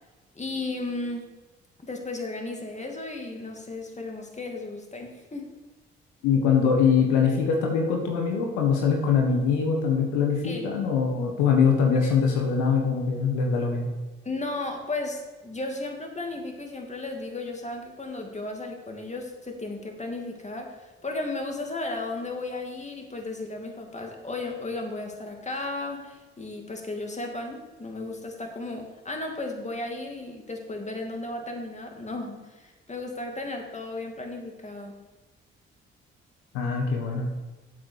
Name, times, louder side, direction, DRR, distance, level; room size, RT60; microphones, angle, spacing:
voice 1, 0.4-1.3 1.8-5.5 10.4-10.7 12.0-12.1 14.2-35.0, left 2 dB, 25° left, 2 dB, 2.6 m, -34 dB
voice 2, 6.2-13.9 36.5-37.3, left 6 dB, 80° left, 1 dB, 1.6 m, -23 dB
8.4 x 8.1 x 6.6 m, 1.2 s
hypercardioid pair, 50°, 29 cm